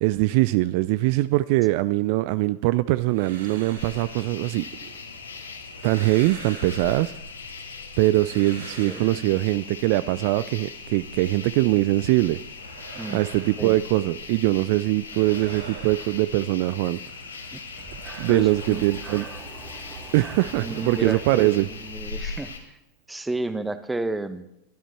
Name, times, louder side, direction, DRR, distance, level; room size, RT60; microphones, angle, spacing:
voice 1, 0.0-4.7 5.8-7.1 8.0-12.4 13.1-17.0 18.2-19.3 20.1-21.7, right 19 dB, 45° right, 16 dB, 0.5 m, -22 dB
sound 1, 2.9-5.1 5.5-7.5 7.9-9.8 12.2-14.4 14.7-16.9 17.3-19.8 20.1-22.5, right 4 dB, 70° right, 5.4 m, -45 dB
sound 2, 3.8-22.6, left 4 dB, 75° left, 2.4 m, -39 dB
Breathing, 17.7-22.6, right 5 dB, 25° right, 2.2 m, -44 dB
voice 2, 18.3-18.8 20.5-21.5 21.8-22.8 23.1-24.5, right 2 dB, 5° right, 12 dB, 1.3 m, -31 dB
22.0 x 13.0 x 4.5 m, 0.83 s
figure-of-eight pair, 90°, 0 cm